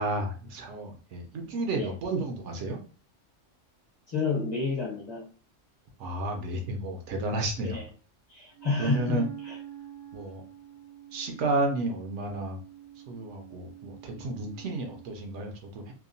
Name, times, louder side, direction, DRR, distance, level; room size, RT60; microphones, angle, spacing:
voice 1, 0.0-2.8 6.0-7.8 8.8-9.3 10.1-10.4 11.1-12.6 13.1-15.9, right 2 dB, 70° right, 0.9 m, -32 dB
voice 2, 4.1-5.3 7.6-7.8 8.3-9.5, left 4 dB, 40° left, 0.8 m, -30 dB
Wind instrument woodwind instrument, 8.5-15.2, right 12 dB, 85° right, 1.2 m, -46 dB
2.8 x 2.1 x 2.6 m
omnidirectional pair, 1.3 m